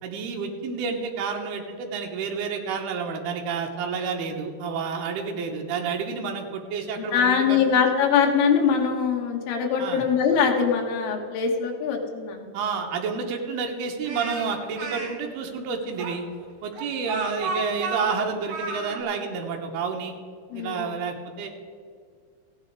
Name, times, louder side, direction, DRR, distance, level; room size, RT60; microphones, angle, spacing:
voice 1, 0.0-7.9 9.8-10.0 12.5-16.2 16.6-20.2 20.5-21.5, right 5 dB, 80° right, 2 dB, 3.2 m, -30 dB
voice 2, 7.0-12.5 20.5-20.9, left 6 dB, 80° left, 1 dB, 3.4 m, -22 dB
Speech, 14.0-15.1 16.0-19.0, right 2 dB, 50° right, 2.6 m, -32 dB
15.0 x 9.5 x 4.8 m, 2.2 s
omnidirectional pair, 4.5 m